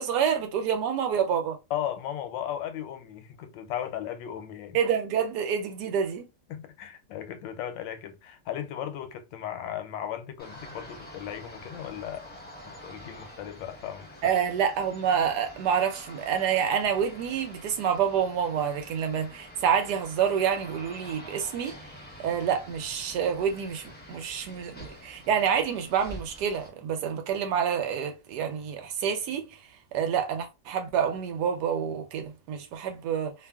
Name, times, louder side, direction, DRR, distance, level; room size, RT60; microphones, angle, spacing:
voice 1, 0.0-1.6 4.7-6.3 14.2-21.8 22.2-29.5 29.9-33.3, right 8 dB, 70° right, 1.1 m, -27 dB
voice 2, 1.7-4.8 6.5-12.3 12.6-14.3, left 10 dB, 85° left, 1.3 m, -36 dB
sound 1, 10.4-26.7, equal, 15° left, 0.3 m, -47 dB
2.8 x 2.4 x 2.2 m
omnidirectional pair, 2.0 m